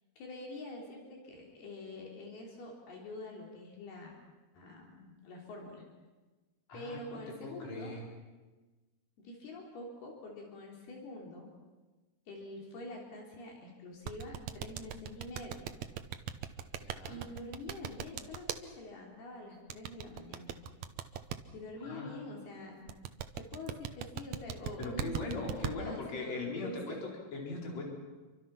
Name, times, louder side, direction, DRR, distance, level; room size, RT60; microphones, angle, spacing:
voice 1, 0.2-4.2 4.5-5.8 6.7-8.0 9.2-11.5 12.3-15.7 17.1-20.5 21.5-23.0 23.4-27.1, left 2 dB, 75° left, -1 dB, 5.4 m, -46 dB
voice 2, 6.7-8.1 16.8-17.2 21.8-22.2 24.8-27.8, left 3 dB, 40° left, -1 dB, 5.5 m, -40 dB
sound 1, 14.1-18.6 19.7-21.4 22.9-25.7, right 9 dB, 85° right, 1.6 m, -38 dB
29.0 x 24.5 x 5.9 m, 1.2 s
omnidirectional pair, 4.6 m